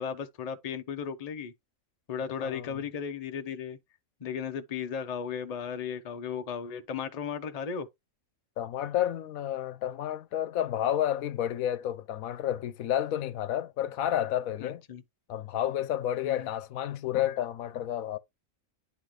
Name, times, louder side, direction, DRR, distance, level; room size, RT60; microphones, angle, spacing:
voice 1, 0.0-1.5 2.1-3.8 4.2-7.9 14.6-15.0 16.2-16.5, left 7 dB, 35° left, 0.7 m, -35 dB
voice 2, 2.4-2.8 8.6-14.8 15.3-18.2, left 11 dB, 85° left, 1.1 m, -30 dB
10.0 x 3.9 x 3.2 m
omnidirectional pair, 1.4 m